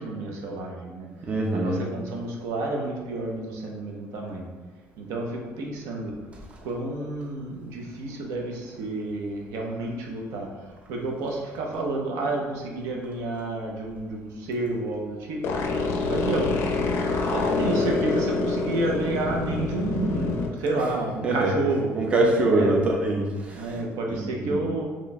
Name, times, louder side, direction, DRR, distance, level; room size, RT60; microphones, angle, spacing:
voice 1, 0.0-1.1 1.5-4.5 5.0-6.1 6.6-10.5 10.9-15.5 16.1-16.5 17.3-22.0 22.5-22.9 23.5-24.8, right 2 dB, 80° right, 0 dB, 0.6 m, -30 dB
voice 2, 1.3-1.8 21.2-21.5 22.0-23.8 24.1-24.7, right 2 dB, 25° right, 0 dB, 0.4 m, -24 dB
sound 1, 15.4-20.5, left 3 dB, 55° left, 0.4 m, -26 dB
3.0 x 2.3 x 4.0 m, 1.3 s
cardioid pair, 160°, 5 cm